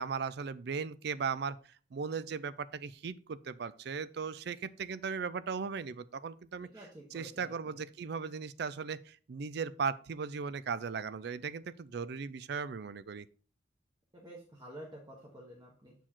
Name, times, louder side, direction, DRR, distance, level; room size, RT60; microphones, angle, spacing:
voice 1, 0.0-1.6 1.9-6.7 7.1-13.3, right 5 dB, 60° right, 17 dB, 0.4 m, -37 dB
voice 2, 6.6-7.8 14.1-15.9, right 1 dB, 20° right, -2 dB, 1.2 m, -50 dB
7.4 x 4.6 x 4.4 m, 0.41 s
head